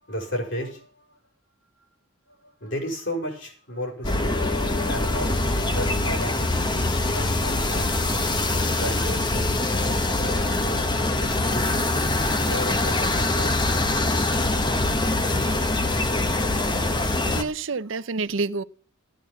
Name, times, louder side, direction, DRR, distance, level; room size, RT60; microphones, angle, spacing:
voice 1, 0.1-1.2 2.4-4.5 4.8-5.4 5.7-8.2 8.8-9.6 10.2-10.9 11.2-11.9 12.4-13.6, equal, 60° left, 5.8 m, -34 dB
sound 1, 4.0-17.4, left 2 dB, 20° left, 1.1 m, -24 dB
voice 2, 17.0-18.6, right 3 dB, 70° right, 0.7 m, -28 dB
15.5 x 8.9 x 7.3 m
head